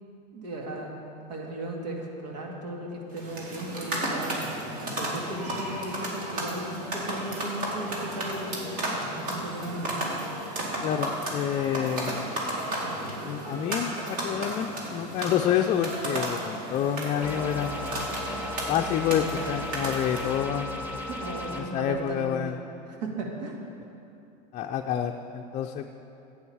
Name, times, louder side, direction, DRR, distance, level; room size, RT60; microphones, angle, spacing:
voice 1, 0.3-0.9 1.3-4.5 4.8-10.0 21.1-22.5 22.9-23.6, right 1 dB, 85° right, 0 dB, 2.1 m, -36 dB
sound 1, 3.1-20.4, right 1 dB, 40° right, 2.3 m, -33 dB
voice 2, 10.8-12.3 13.2-18.1 18.7-21.0 21.5-22.6 24.5-25.9, left 9 dB, 35° left, 3 dB, 0.5 m, -28 dB
sound 2, 17.2-21.6, left 1 dB, 10° right, 1.3 m, -36 dB
11.0 x 8.5 x 5.6 m, 2.8 s
supercardioid pair, 135°, 21 cm